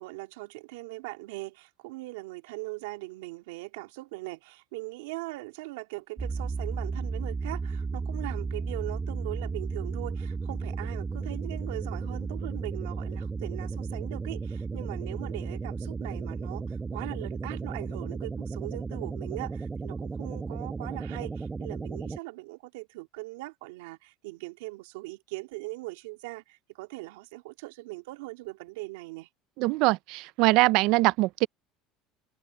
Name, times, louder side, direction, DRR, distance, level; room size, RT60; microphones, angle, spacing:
voice 1, 0.0-29.3, right 22 dB, 85° right, 3.1 m, -40 dB
sound 1, 6.2-22.2, right 4 dB, 20° right, 1.0 m, -34 dB
voice 2, 29.6-31.5, right 21 dB, 70° right, 0.6 m, -23 dB
supercardioid pair, 110°, 0 cm